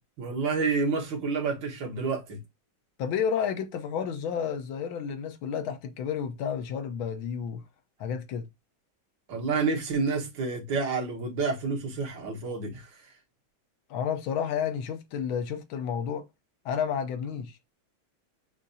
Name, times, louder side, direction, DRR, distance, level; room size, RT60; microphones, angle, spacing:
voice 1, 0.2-2.4 9.3-13.0, right 4 dB, 65° right, 2.0 m, -29 dB
voice 2, 3.0-7.6 8.0-8.5 13.9-16.2 16.6-17.6, left 7 dB, 80° left, 1.5 m, -31 dB
6.6 x 2.6 x 2.6 m
omnidirectional pair, 2.2 m